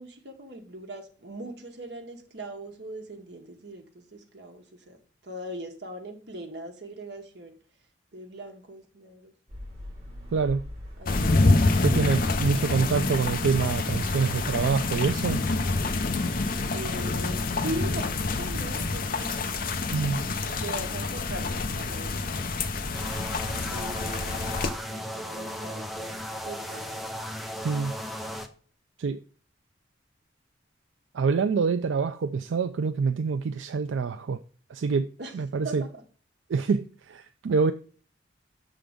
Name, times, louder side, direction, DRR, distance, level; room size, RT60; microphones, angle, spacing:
voice 1, 0.0-5.0 5.2-7.6 8.1-9.3 16.7-19.7 20.1-22.7 23.7-24.6 24.9-27.2 35.2-35.3 35.6-36.0, right 1 dB, 60° right, 1.3 m, -40 dB
sound 1, 9.5-24.4, left 1 dB, 35° right, 2.3 m, -43 dB
voice 2, 10.3-10.6 11.8-15.4 19.9-20.2 27.6-27.9 29.0-29.2 31.1-34.4 34.7-35.8 36.5-37.7, right 5 dB, 85° right, 0.4 m, -26 dB
sound 2, 11.1-24.7, left 3 dB, 50° left, 0.7 m, -27 dB
sound 3, 22.9-28.5, equal, ahead, 0.6 m, -36 dB
6.8 x 3.8 x 5.0 m
head